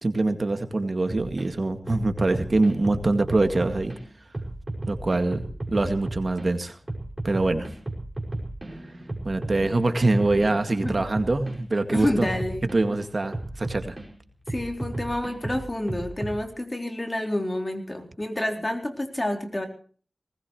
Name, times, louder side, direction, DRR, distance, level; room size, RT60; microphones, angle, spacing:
voice 1, 0.0-3.9 4.9-5.4 5.7-6.8 7.2-7.7 9.2-12.3 12.7-14.0, right 2 dB, 55° right, 7 dB, 2.0 m, -24 dB
sound 1, 1.1-1.5 1.9-4.0 4.3-6.5 6.9-11.5 11.9-12.8 13.3-14.1 14.5-16.4, right 1 dB, 30° right, 5.6 m, -34 dB
voice 2, 11.9-12.7 14.5-19.7, left 1 dB, 25° left, 4 dB, 4.2 m, -28 dB
20.0 x 20.0 x 3.1 m, 0.43 s
wide cardioid pair, 55°, 0 cm